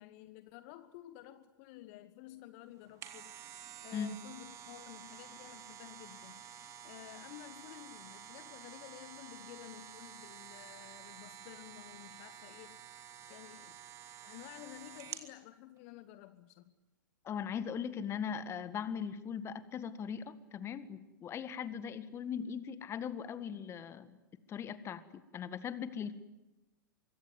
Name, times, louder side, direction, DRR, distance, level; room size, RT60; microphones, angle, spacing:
voice 1, 0.0-3.4 3.8-6.4 6.8-12.8 13.3-13.8 14.2-16.7, left 15 dB, 45° left, 12 dB, 1.2 m, -52 dB
sound 1, 2.7-15.3 15.8-15.9, right 9 dB, 30° right, 2.7 m, -50 dB
voice 2, 17.2-24.2 24.5-25.0 25.3-26.2, left 7 dB, 25° left, 13 dB, 1.7 m, -39 dB
25.0 x 23.5 x 9.5 m, 1.0 s
figure-of-eight pair, 105°, 11 cm